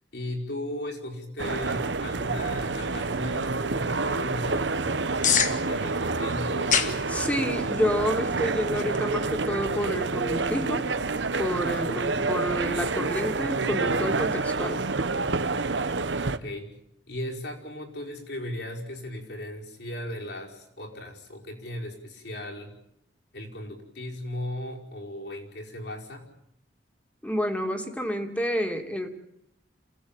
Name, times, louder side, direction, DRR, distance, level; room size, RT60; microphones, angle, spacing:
voice 1, 0.1-8.0 16.2-16.7 17.1-22.8 23.3-26.3, left 1 dB, 70° left, -1 dB, 5.3 m, -37 dB
sound 1, 1.4-16.4, right 3 dB, 80° right, 1.1 m, -28 dB
sound 2, 2.3-12.9, left 7 dB, 45° left, 1.6 m, -34 dB
voice 2, 7.1-10.8 11.4-14.8 27.2-29.1, equal, 10° left, 5 dB, 2.3 m, -29 dB
27.5 x 17.5 x 8.9 m, 0.80 s
head